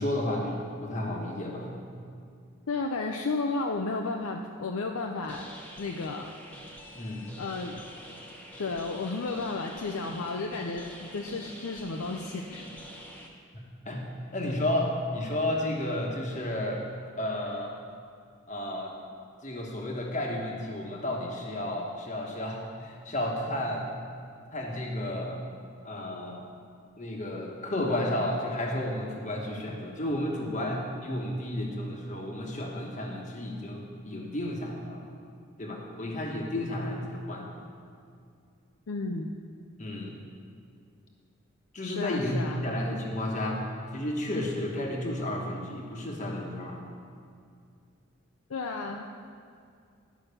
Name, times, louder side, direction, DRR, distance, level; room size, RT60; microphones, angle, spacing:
voice 1, 0.0-1.7 7.0-7.3 13.8-16.8 17.2-17.7 18.5-18.9 19.4-23.9 24.5-25.4 25.8-26.5 27.0-35.0 35.6-37.5 39.8-40.1 41.7-43.6 43.9-46.8, left 1 dB, 35° left, -1 dB, 1.1 m, -32 dB
voice 2, 2.7-5.5 5.8-6.3 7.4-7.8 8.6-12.7 38.9-39.3 41.8-42.7 48.5-49.0, left 3 dB, 90° left, 3 dB, 0.6 m, -33 dB
sound 1, 5.3-13.3, equal, 5° left, 0.9 m, -47 dB
11.5 x 5.7 x 6.8 m, 2.3 s
head